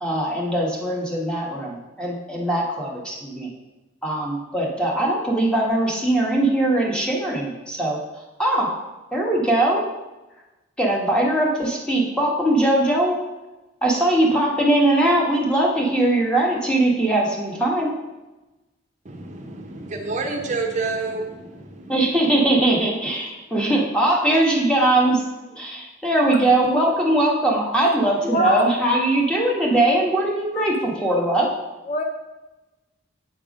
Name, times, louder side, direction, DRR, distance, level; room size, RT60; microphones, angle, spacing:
voice 1, 0.0-3.5 4.0-8.0 8.4-8.7 9.1-9.8 10.8-13.2 13.8-17.9 21.9-25.2 25.5-31.5, right 1 dB, 5° left, -2 dB, 1.1 m, -21 dB
voice 2, 19.0-22.0, right 3 dB, 40° right, 4 dB, 0.6 m, -29 dB
voice 3, 28.3-28.6 30.5-30.7 31.9-32.0, left 1 dB, 35° left, 4 dB, 0.5 m, -22 dB
7.8 x 3.4 x 5.1 m, 1.1 s
head